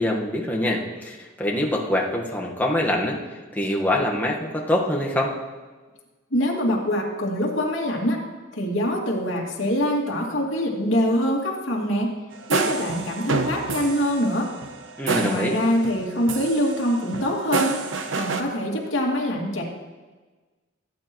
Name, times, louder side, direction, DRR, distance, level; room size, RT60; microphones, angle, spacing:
voice 1, 0.0-3.2 3.5-5.3 15.0-15.5, left 1 dB, 10° left, -2 dB, 1.4 m, -24 dB
voice 2, 6.3-8.2 8.5-12.1 12.5-14.5 15.1-17.8 18.1-19.6, equal, 70° left, -2 dB, 2.4 m, -24 dB
sound 1, 12.3-16.0 16.3-18.4, right 3 dB, 75° right, 0.9 m, -28 dB
17.0 x 9.1 x 3.1 m, 1.3 s
head